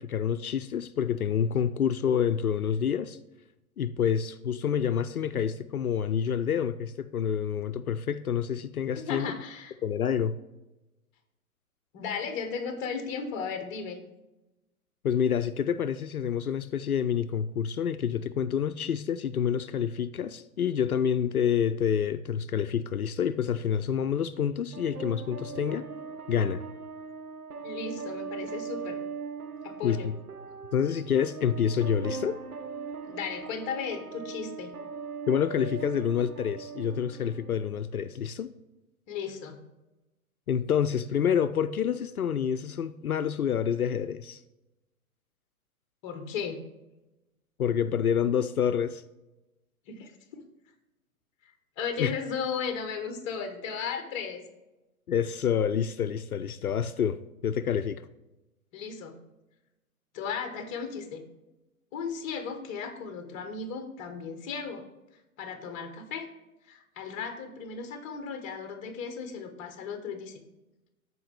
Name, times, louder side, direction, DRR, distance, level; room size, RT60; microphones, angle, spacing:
voice 1, 0.0-3.2 3.8-9.3 9.8-10.4 15.0-25.9 26.3-26.6 29.8-30.1 30.7-32.4 35.3-38.5 40.5-44.4 47.6-49.0 52.0-52.1 55.1-58.0, left 8 dB, 75° left, 0.5 m, -28 dB
voice 2, 9.0-9.8 11.9-14.0 27.6-29.0 29.6-30.1 33.1-34.7 39.1-39.6 46.0-46.6 49.9-50.4 51.4-54.4 58.7-59.2 60.1-61.2 61.9-64.8 65.4-66.3 66.7-70.4, left 6 dB, 20° left, 0.9 m, -35 dB
sound 1, 24.7-37.7, right 5 dB, 80° right, 0.7 m, -40 dB
13.0 x 4.6 x 3.3 m
figure-of-eight pair, 115°, 44 cm